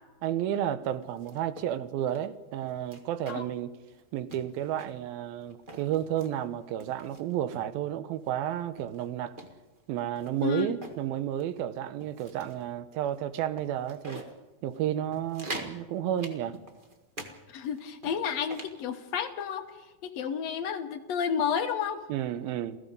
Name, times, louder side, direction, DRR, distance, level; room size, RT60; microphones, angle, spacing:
voice 1, 0.2-3.7 4.1-9.4 9.9-14.2 14.6-16.6 22.1-22.8, right 11 dB, 85° right, 2.7 m, -32 dB
sound 1, 1.0-1.7 2.1-2.2 2.6-3.6 3.9-4.0 4.3-5.0 5.5-6.3 6.8-7.7 8.2-8.3 8.8-11.0 11.4-11.6 12.0-12.6 13.1-13.2 13.5-14.3 14.7-14.8 15.1-15.8 16.2-17.3 17.6-18.8, right 2 dB, 60° right, 0.5 m, -44 dB
voice 2, 17.5-19.7 20.0-22.0, left 7 dB, 70° left, 1.7 m, -31 dB
28.5 x 17.0 x 5.4 m
omnidirectional pair, 4.2 m